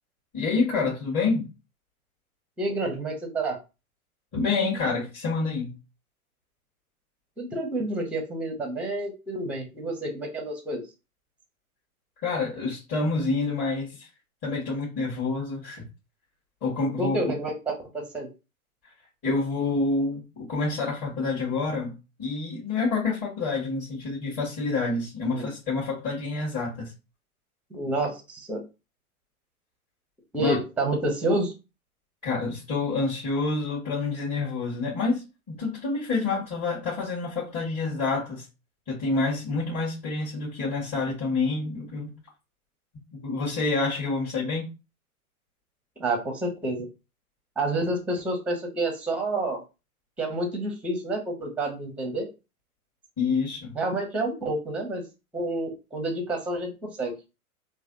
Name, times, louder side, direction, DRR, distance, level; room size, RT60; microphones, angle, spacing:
voice 1, 0.3-1.5 4.3-5.8 12.2-14.1 14.4-15.8 16.6-17.3 19.2-26.9 30.4-30.6 32.2-38.4 38.9-42.1 43.1-44.7 53.2-53.8, left 3 dB, 30° left, 1.5 m, -28 dB
voice 2, 2.6-3.6 7.4-10.8 17.0-18.3 25.3-25.5 27.7-28.6 30.3-31.5 46.0-46.9 47.6-49.6 50.2-52.3 53.8-55.0 55.3-57.1, right 2 dB, 5° right, 0.6 m, -29 dB
3.2 x 2.3 x 2.5 m
hypercardioid pair, 110°, 44 cm